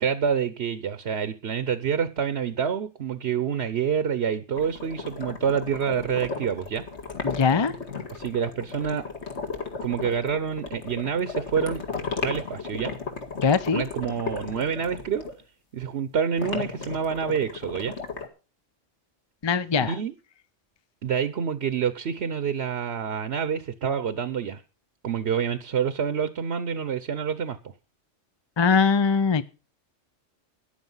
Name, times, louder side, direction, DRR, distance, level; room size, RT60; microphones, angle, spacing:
voice 1, 0.0-6.8 8.1-9.0 9.8-11.8 12.2-12.9 13.7-15.2 15.7-17.9 19.8-20.1 21.0-24.6 25.0-27.7, right 7 dB, 55° right, 1.1 m, -27 dB
sound 1, 4.6-15.3 16.4-18.3, left 4 dB, 60° left, 2.4 m, -35 dB
voice 2, 7.2-7.7 13.4-13.8 19.4-20.0 28.6-29.4, left 5 dB, 35° left, 0.5 m, -21 dB
13.5 x 10.0 x 5.5 m
omnidirectional pair, 1.3 m